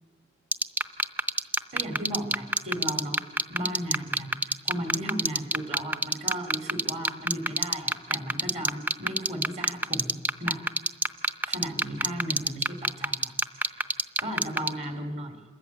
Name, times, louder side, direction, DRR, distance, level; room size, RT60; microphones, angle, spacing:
sound 1, 0.5-14.7, right 2 dB, 10° right, 0.5 m, -23 dB
voice 1, 1.7-10.6 11.5-13.8 14.2-15.4, equal, 35° right, 6 dB, 2.6 m, -35 dB
27.0 x 14.0 x 8.3 m, 1.5 s
head